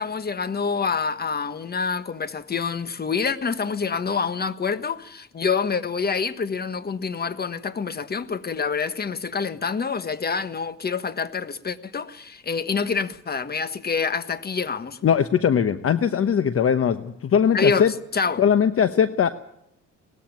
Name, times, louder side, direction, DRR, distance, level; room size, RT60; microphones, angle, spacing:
voice 1, 0.0-15.0 17.5-18.4, left 5 dB, 30° left, 1.4 m, -27 dB
voice 2, 15.0-17.9 18.4-19.3, left 8 dB, 50° left, 1.0 m, -20 dB
19.5 x 14.5 x 9.2 m
cardioid pair, 90°, 30 cm